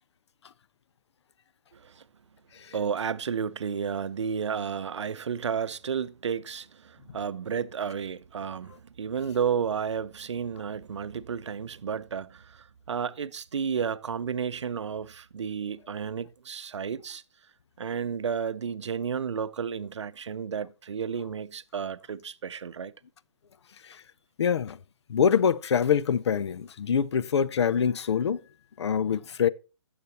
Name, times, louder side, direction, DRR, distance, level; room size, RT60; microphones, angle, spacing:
voice 1, 1.7-2.0 2.7-17.2 17.8-22.9, right 7 dB, 75° right, 0.6 m, -32 dB
voice 2, 24.4-24.8 25.1-28.4 28.8-29.5, left 7 dB, 65° left, 0.6 m, -25 dB
16.0 x 6.8 x 2.9 m
hypercardioid pair, 135°, 15 cm